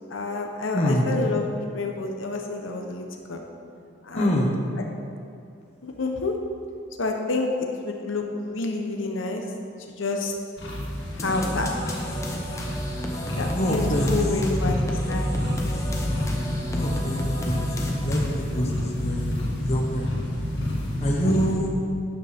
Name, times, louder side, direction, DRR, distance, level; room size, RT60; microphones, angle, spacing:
voice 1, 0.1-3.5 4.0-4.4 5.8-6.4 7.0-9.5 9.8-10.3 11.1-11.7 13.4-15.3 21.1-21.3, left 3 dB, 90° left, 3 dB, 0.9 m, -29 dB
voice 2, 0.7-1.1 4.1-4.5 13.5-14.1 16.7-17.5 17.8-19.3 19.6-20.1 21.0-21.7, equal, 35° left, -2 dB, 1.3 m, -25 dB
sound 1, 10.6-21.5, left 1 dB, 60° left, 2.0 m, -28 dB
sound 2, 11.2-18.6, equal, 15° left, 0.9 m, -34 dB
12.0 x 9.3 x 3.6 m, 2.5 s
head